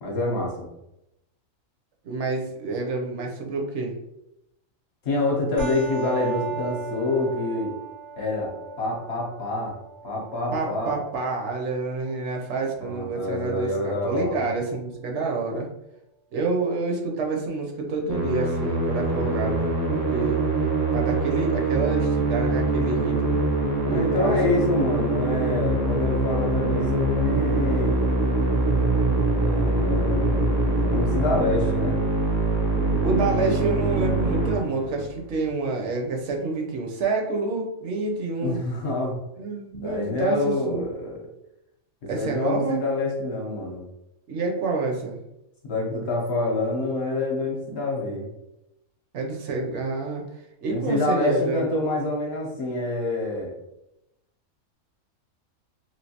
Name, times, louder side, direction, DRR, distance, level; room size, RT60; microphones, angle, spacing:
voice 1, 0.0-0.7 5.0-7.7 8.2-8.5 8.8-9.7 10.0-11.0 12.8-14.5 23.8-28.1 29.4-30.5 30.8-32.0 38.4-39.2 39.8-41.2 42.1-43.8 45.6-48.3 50.7-53.5, left 2 dB, 60° left, -1 dB, 0.9 m, -27 dB
voice 2, 2.0-4.0 10.5-15.7 16.3-19.7 20.1-20.4 20.9-23.4 23.9-24.4 33.0-38.6 39.4-40.9 42.1-42.8 44.3-45.2 49.1-50.2 50.6-51.7, right 3 dB, 70° right, 1 dB, 0.9 m, -28 dB
sound 1, 5.6-14.6, right 4 dB, 85° right, 1.3 m, -38 dB
Musical instrument, 18.1-35.2, right 2 dB, 25° right, 0.3 m, -24 dB
3.2 x 2.6 x 2.7 m, 0.87 s
omnidirectional pair, 1.4 m